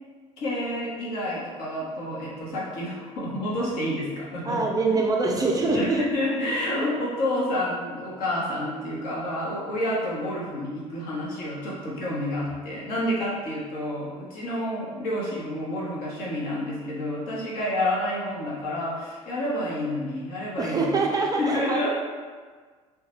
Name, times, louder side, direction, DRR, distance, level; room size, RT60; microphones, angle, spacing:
voice 1, 0.4-4.6 5.7-21.0 21.4-21.9, left 1 dB, 55° left, -5 dB, 1.0 m, -29 dB
voice 2, 4.4-6.0 20.6-21.9, right 3 dB, 20° right, 0 dB, 0.4 m, -24 dB
3.7 x 2.3 x 3.0 m, 1.5 s
figure-of-eight pair, 60°, 17 cm